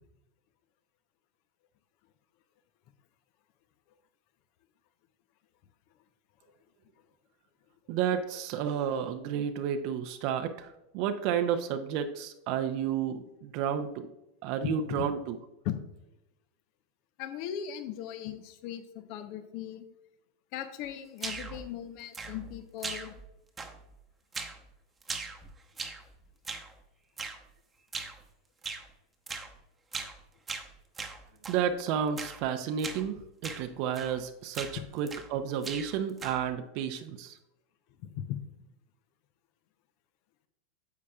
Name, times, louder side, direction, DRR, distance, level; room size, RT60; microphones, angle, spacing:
voice 1, 7.9-14.1 14.4-15.4 31.5-37.4, right 8 dB, 55° right, 7 dB, 0.6 m, -31 dB
voice 2, 17.2-19.8 20.5-23.1 34.8-34.9 38.0-38.4, left 10 dB, 55° left, 10 dB, 0.8 m, -38 dB
sound 1, 21.2-21.6 22.1-22.5 22.8-23.3 23.6-24.0 24.3-24.6 25.0-26.1 26.4-26.7 27.2-27.4 27.9-28.2 28.6-28.9 29.3-29.5 29.9-30.2 30.5-31.6 32.2-32.4 32.8-33.0 33.4-33.7 33.9-34.2 34.5-35.3 35.6-36.5, right 4 dB, 20° right, 1.0 m, -39 dB
9.5 x 7.4 x 2.4 m, 0.92 s
hypercardioid pair, 90°, 0 cm